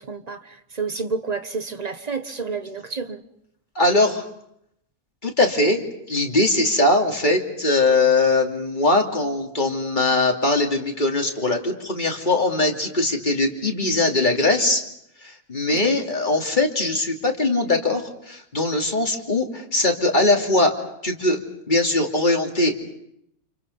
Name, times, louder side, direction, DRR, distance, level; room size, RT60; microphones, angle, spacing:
voice 1, 0.0-3.2 15.7-15.9, right 4 dB, 30° right, 1.3 m, -30 dB
voice 2, 3.7-4.2 5.2-14.8 15.2-20.7 21.0-21.4 21.7-22.8, left 2 dB, 35° left, 3.0 m, -21 dB
30.0 x 28.0 x 5.6 m
omnidirectional pair, 1.5 m